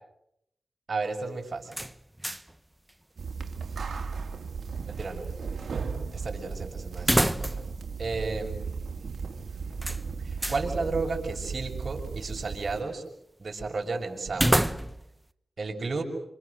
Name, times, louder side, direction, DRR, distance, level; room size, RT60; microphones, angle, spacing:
voice 1, 0.9-1.8 4.9-5.3 6.1-7.6 8.0-8.6 10.2-13.1 13.4-14.6 15.6-16.0, right 3 dB, 55° right, 2 dB, 6.3 m, -33 dB
sound 1, 1.7-2.6 2.9-3.0 7.0-7.8 8.1-8.2 9.8-10.7 14.3-15.2, right 1 dB, 10° right, 1.2 m, -27 dB
sound 2, 3.2-12.8, right 5 dB, 70° right, 2.7 m, -36 dB
27.0 x 26.5 x 6.6 m, 0.78 s
cardioid pair, 45°, 0 cm